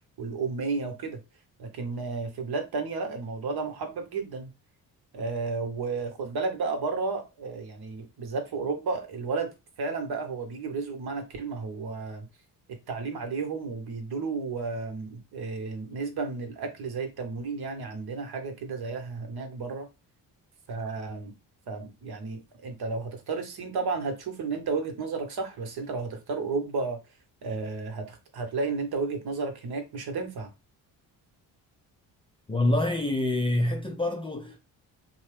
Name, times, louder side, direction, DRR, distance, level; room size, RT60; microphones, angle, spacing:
voice 1, 0.2-1.2 1.6-4.5 5.1-9.5 9.8-12.3 12.9-19.9 20.7-21.3 21.7-27.0 27.4-30.5, right 4 dB, 55° right, 1.0 m, -32 dB
voice 2, 32.5-34.6, left 1 dB, 10° left, 0.4 m, -26 dB
2.7 x 2.0 x 3.2 m
supercardioid pair, 55°, 45 cm